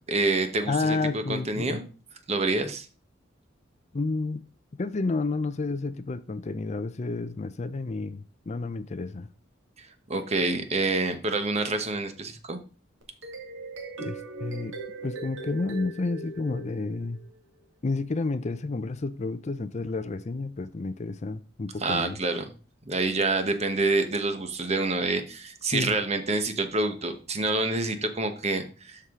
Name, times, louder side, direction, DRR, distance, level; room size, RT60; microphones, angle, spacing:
voice 1, 0.1-1.8 2.3-2.8 10.1-12.6 21.8-22.4 22.9-29.0, right 3 dB, 35° right, 1.1 m, -27 dB
voice 2, 0.7-1.8 3.9-4.4 4.8-9.3 14.0-14.8 15.0-17.2 17.8-22.2 25.7-25.9, left 3 dB, 35° left, 0.5 m, -30 dB
sound 1, 13.0-17.4, right 2 dB, 80° right, 2.0 m, -39 dB
12.5 x 4.8 x 3.7 m
head